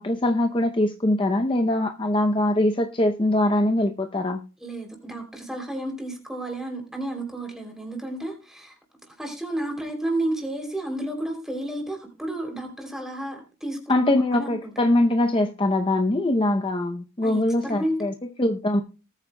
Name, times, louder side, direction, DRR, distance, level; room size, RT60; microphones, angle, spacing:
voice 1, 0.0-4.4 13.9-18.8, left 1 dB, 25° left, 0.6 m, -22 dB
voice 2, 4.6-8.7 9.1-14.7 15.2-15.3 17.2-18.1, right 1 dB, ahead, 3.0 m, -32 dB
19.0 x 9.0 x 2.2 m
head